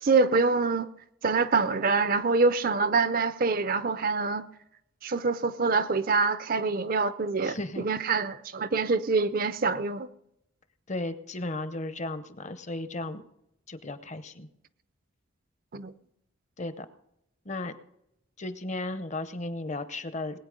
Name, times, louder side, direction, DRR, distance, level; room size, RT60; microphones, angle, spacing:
voice 1, 0.0-0.9 1.2-4.5 5.0-10.1 15.7-15.9, right 4 dB, 45° right, 14 dB, 0.5 m, -25 dB
voice 2, 7.4-7.9 10.9-13.2 13.7-14.5 16.6-16.9 17.5-17.7 18.4-20.4, left 2 dB, 35° left, 12 dB, 0.7 m, -35 dB
20.0 x 9.0 x 5.1 m, 0.82 s
head